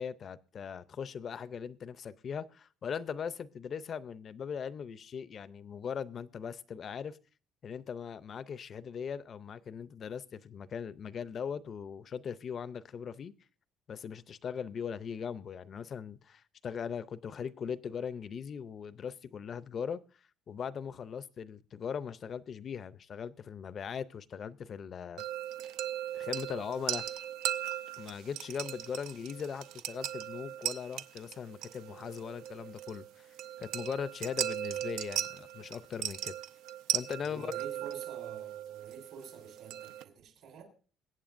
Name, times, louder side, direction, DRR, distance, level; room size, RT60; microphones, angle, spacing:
voice 1, 0.0-7.2 7.6-13.3 13.9-20.0 20.5-25.2 26.1-27.1 28.0-36.3 36.9-37.8, left 7 dB, 40° left, 0.5 m, -39 dB
sound 1, 25.2-40.0, right 12 dB, 90° right, 0.5 m, -38 dB
voice 2, 37.2-40.6, right 6 dB, 75° right, 3.6 m, -48 dB
22.0 x 8.4 x 2.5 m
cardioid pair, 130°, 0 cm